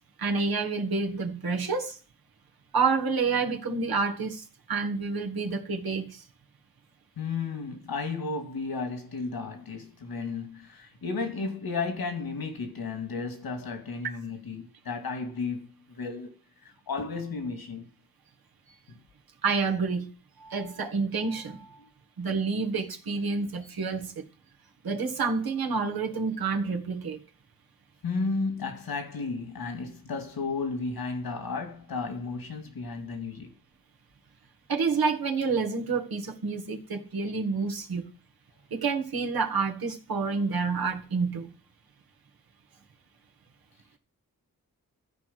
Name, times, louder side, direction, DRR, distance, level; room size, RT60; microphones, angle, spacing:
voice 1, 0.2-2.0 2.7-6.2 19.4-20.1 20.4-21.7 22.2-24.2 24.8-27.2 34.7-38.0 38.7-41.5, right 4 dB, 85° right, 1.8 m, -28 dB
voice 2, 7.2-16.3 16.6-17.9 18.9-19.0 21.8-21.9 28.0-33.5, left 4 dB, 85° left, 2.4 m, -33 dB
13.5 x 4.8 x 7.6 m
wide cardioid pair, 80°, 35 cm